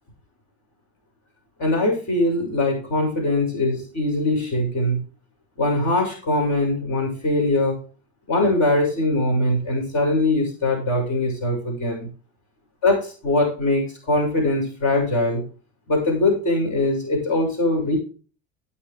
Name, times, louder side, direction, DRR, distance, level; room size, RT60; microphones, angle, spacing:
voice 1, 1.6-5.0 5.6-7.8 8.3-12.1 12.8-15.4 15.9-18.0, left 2 dB, 40° left, 1 dB, 6.7 m, -22 dB
17.0 x 6.4 x 3.6 m, 0.37 s
hypercardioid pair, 85°, 41 cm